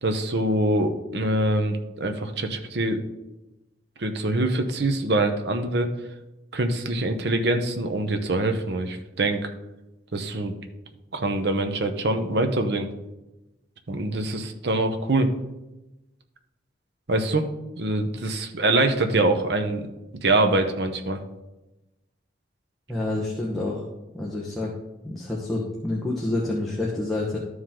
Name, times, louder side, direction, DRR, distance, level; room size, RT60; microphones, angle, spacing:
voice 1, 0.0-3.0 4.0-5.9 6.5-9.5 10.1-10.5 11.1-12.9 13.9-15.3 17.1-17.5 17.8-19.9 20.2-21.2, right 2 dB, 65° right, 6 dB, 0.8 m, -24 dB
voice 2, 22.9-23.8 24.1-24.7 25.0-27.4, left 2 dB, ahead, -5 dB, 1.1 m, -28 dB
12.5 x 4.8 x 3.8 m, 0.99 s
head